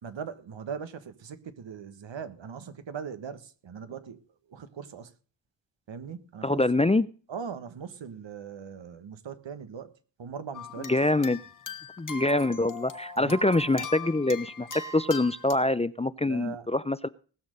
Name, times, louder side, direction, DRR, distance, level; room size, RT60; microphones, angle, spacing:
voice 1, 0.0-4.2 4.5-5.1 5.9-6.6 7.3-9.9 10.2-11.0 13.2-13.5 16.2-16.7, right 6 dB, 65° right, 1.5 m, -40 dB
voice 2, 6.4-7.1 10.8-11.4 12.0-14.7 14.9-17.1, left 2 dB, 15° left, 0.5 m, -25 dB
sound 1, 10.5-15.5, left 3 dB, 40° left, 1.7 m, -41 dB
19.0 x 6.4 x 6.6 m
cardioid pair, 60°, 47 cm